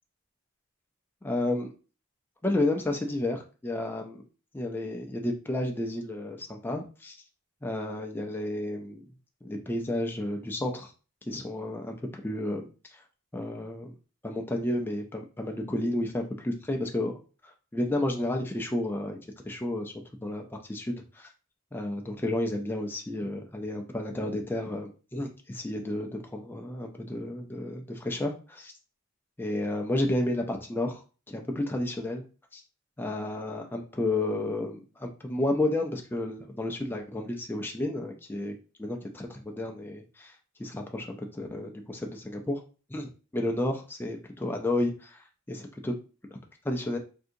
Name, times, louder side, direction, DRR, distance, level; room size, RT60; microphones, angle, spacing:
voice 1, 1.2-1.7 2.4-4.2 4.5-7.2 7.6-9.0 9.4-10.9 11.3-13.0 13.3-13.9 14.2-17.1 17.4-19.2 19.4-19.9 20.2-21.3 21.7-28.7 29.4-32.2 32.5-32.6 33.0-42.6 42.9-45.9 46.6-47.0, left 1 dB, 10° left, 3 dB, 0.3 m, -32 dB
3.6 x 2.7 x 2.5 m, 0.35 s
head